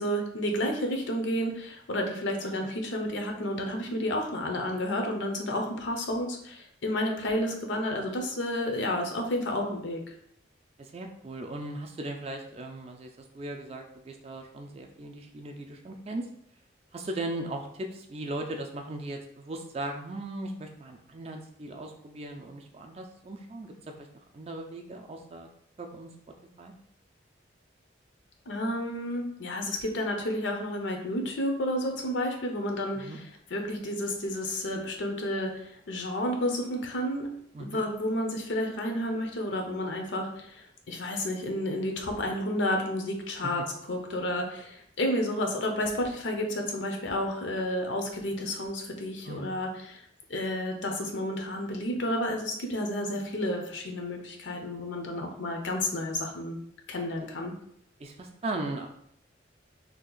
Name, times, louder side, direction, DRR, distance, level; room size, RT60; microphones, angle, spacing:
voice 1, 0.0-10.0 28.5-33.1 33.5-37.3 37.6-43.6 43.9-50.0 50.3-56.6 56.9-57.5, left 1 dB, 75° left, 3 dB, 0.6 m, -31 dB
voice 2, 2.4-2.7 10.8-16.3 16.9-24.1 24.3-25.5 25.8-26.1 26.6-26.7 32.9-33.2 37.5-37.8 49.2-49.6 58.0-58.9, right 2 dB, 30° right, 4 dB, 0.3 m, -38 dB
2.8 x 2.4 x 3.8 m, 0.72 s
head